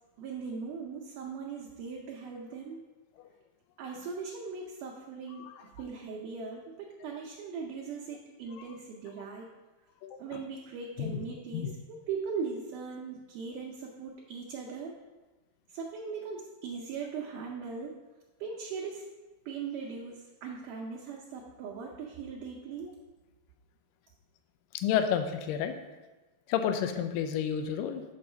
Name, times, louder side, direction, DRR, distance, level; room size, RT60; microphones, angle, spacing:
voice 1, 0.2-2.9 3.8-9.5 10.2-14.9 15.7-18.0 18.4-19.1 19.5-23.0, right 5 dB, 75° right, -2 dB, 2.0 m, -39 dB
voice 2, 10.0-10.4 11.0-11.2 11.5-11.7 24.7-25.8 26.5-28.0, left 8 dB, 80° left, 7 dB, 2.1 m, -30 dB
8.5 x 4.0 x 5.6 m, 1.2 s
omnidirectional pair, 4.4 m